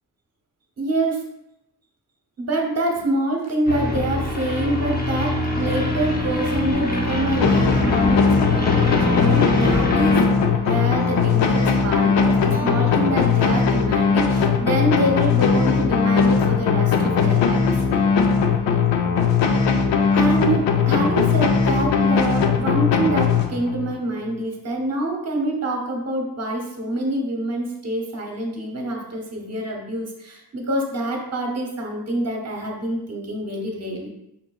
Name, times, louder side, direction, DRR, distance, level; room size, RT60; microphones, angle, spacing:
voice 1, 0.8-1.2 2.4-10.2 10.6-17.6 20.1-34.1, right 1 dB, 35° right, 1 dB, 0.9 m, -26 dB
sound 1, 3.7-10.2, left 1 dB, 20° left, 0.6 m, -24 dB
sound 2, 6.7-13.8, equal, 60° left, 1.0 m, -34 dB
sound 3, 7.4-23.9, left 5 dB, 85° left, 0.6 m, -19 dB
5.7 x 3.7 x 2.3 m, 0.83 s
wide cardioid pair, 175°, 42 cm